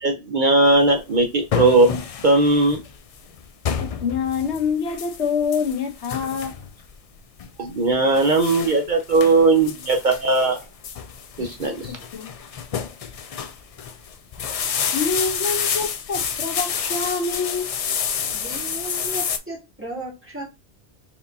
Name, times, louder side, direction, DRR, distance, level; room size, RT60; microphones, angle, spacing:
voice 1, 0.0-2.8 7.6-10.6 11.4-11.9, right 2 dB, 50° right, 4 dB, 0.7 m, -18 dB
sound 1, 0.7-19.4, left 7 dB, 65° left, 0.3 m, -29 dB
voice 2, 4.0-6.6 8.7-8.8 11.4-12.3 14.9-17.7, left 5 dB, 80° left, 3 dB, 1.3 m, -26 dB
voice 3, 18.3-20.4, right 2 dB, 10° right, -2 dB, 1.6 m, -35 dB
4.3 x 3.6 x 2.7 m, 0.25 s
omnidirectional pair, 1.1 m